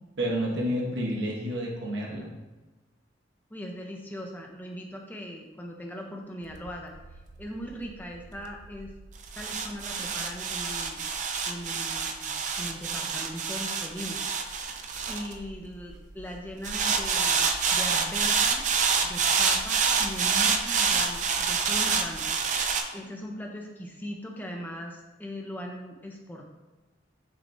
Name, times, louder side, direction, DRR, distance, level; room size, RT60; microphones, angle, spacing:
voice 1, 0.2-2.3, equal, 65° right, -3 dB, 1.1 m, -29 dB
voice 2, 3.5-6.9 7.4-8.9 9.4-11.0 11.5-12.3 12.6-14.2 15.1-18.6 19.0-22.3 22.9-26.5, equal, 10° left, 0 dB, 0.5 m, -39 dB
sound 1, 6.5-16.0 16.6-22.8, right 5 dB, 40° right, 0.4 m, -27 dB
6.0 x 3.3 x 2.6 m, 1.2 s
head